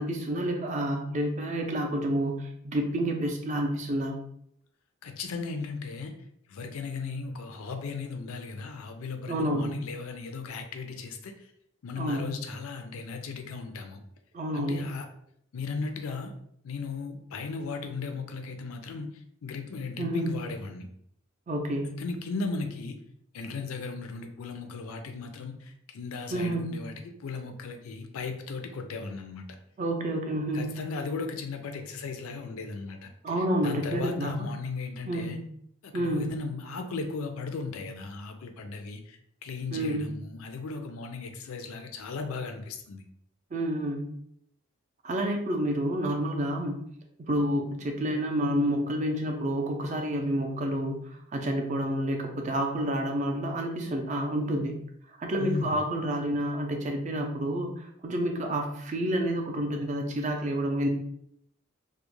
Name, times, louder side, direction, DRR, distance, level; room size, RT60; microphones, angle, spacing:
voice 1, 0.0-4.2 9.3-9.8 12.0-12.3 14.3-14.8 20.0-20.3 21.5-21.9 26.3-26.8 29.8-30.7 33.2-34.3 35.1-35.4 35.9-36.3 39.7-40.1 43.5-44.1 45.0-46.8 47.2-51.0 51.3-54.8 55.2-60.9, right 1 dB, 35° right, 2 dB, 0.4 m, -29 dB
voice 2, 5.0-6.2 6.5-11.5 11.8-14.0 14.5-15.1 15.5-16.3 16.6-20.9 22.0-23.0 23.3-29.6 30.5-35.4 35.8-43.0 55.4-55.8, left 4 dB, 85° left, 5 dB, 0.4 m, -36 dB
2.3 x 2.1 x 2.9 m, 0.70 s
head